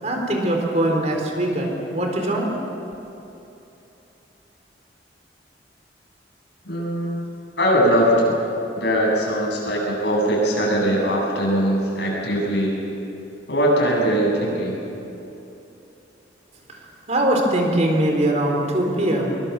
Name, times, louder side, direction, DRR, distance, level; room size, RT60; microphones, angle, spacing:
voice 1, 0.0-2.5 16.7-16.8 17.1-19.3, right 1 dB, 40° right, 1 dB, 4.0 m, -21 dB
voice 2, 6.6-7.2 7.6-8.4 8.7-12.7 13.5-14.8, equal, 75° left, -3 dB, 8.0 m, -21 dB
23.5 x 22.5 x 7.2 m, 2.9 s
head